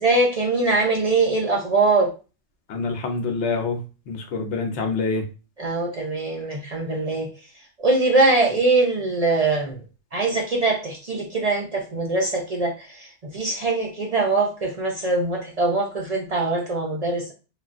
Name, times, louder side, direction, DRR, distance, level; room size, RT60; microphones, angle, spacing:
voice 1, 0.0-2.1 5.6-9.8 10.1-17.3, right 3 dB, 50° right, -1 dB, 0.5 m, -22 dB
voice 2, 2.7-3.8 4.1-5.2, left 4 dB, 70° left, 4 dB, 0.9 m, -26 dB
3.1 x 2.4 x 2.4 m, 0.32 s
omnidirectional pair, 1.2 m